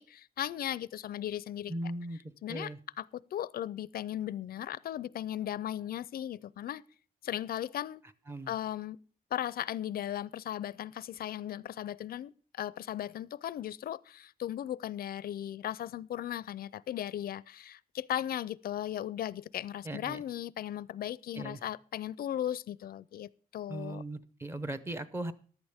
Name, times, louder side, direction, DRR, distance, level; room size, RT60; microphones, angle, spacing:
voice 1, 0.0-1.7 2.4-3.0 3.3-6.8 7.2-8.0 8.5-9.0 9.3-24.0, left 11 dB, 75° left, 0.4 m, -37 dB
voice 2, 1.7-2.2 2.5-2.8 8.3-8.5 19.8-20.2 21.3-21.6 23.7-25.3, right 1 dB, 15° right, 0.7 m, -38 dB
15.0 x 11.0 x 3.5 m
wide cardioid pair, 170°, 16 cm